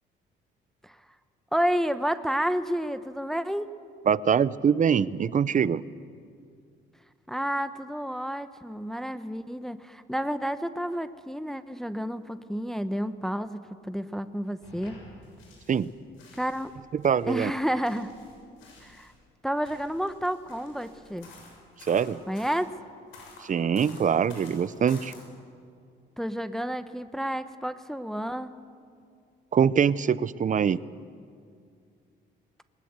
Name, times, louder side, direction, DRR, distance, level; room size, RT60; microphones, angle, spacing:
voice 1, 1.5-3.7 7.3-13.6 13.9-15.0 16.3-16.7 17.3-18.1 18.8-19.1 19.4-21.3 22.3-22.7 26.2-28.5, equal, ahead, 11 dB, 0.8 m, -30 dB
voice 2, 4.1-5.8 15.7-15.9 17.0-17.5 21.9-22.2 23.5-25.1 29.5-30.8, right 7 dB, 40° right, 18 dB, 0.6 m, -23 dB
sound 1, 14.6-15.9 16.1-19.1 19.6-22.6 23.1-25.2, left 3 dB, 90° left, 6.9 m, -50 dB
20.5 x 19.5 x 8.1 m, 2.3 s
cardioid pair, 90°, 20 cm